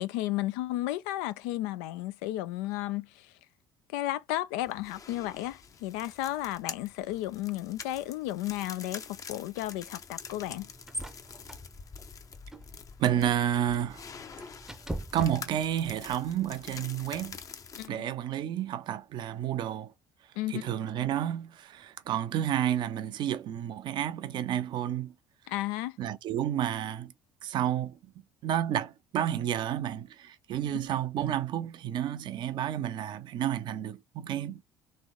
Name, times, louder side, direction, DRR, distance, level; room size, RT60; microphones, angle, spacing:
voice 1, 0.0-3.3 3.9-10.7 17.8-18.2 20.4-20.7 25.5-26.0 30.7-30.9, left 15 dB, 65° left, 0.4 m, -33 dB
sound 1, 4.6-17.9, left 6 dB, 35° left, 0.7 m, -46 dB
sound 2, 10.2-16.0, right 1 dB, 5° right, 0.7 m, -43 dB
voice 2, 13.0-14.0 15.1-17.4 17.9-19.9 20.5-25.1 26.0-27.1 27.4-28.0 28.4-34.6, right 10 dB, 50° right, 0.6 m, -30 dB
3.4 x 3.2 x 3.8 m
figure-of-eight pair, 55°, 10 cm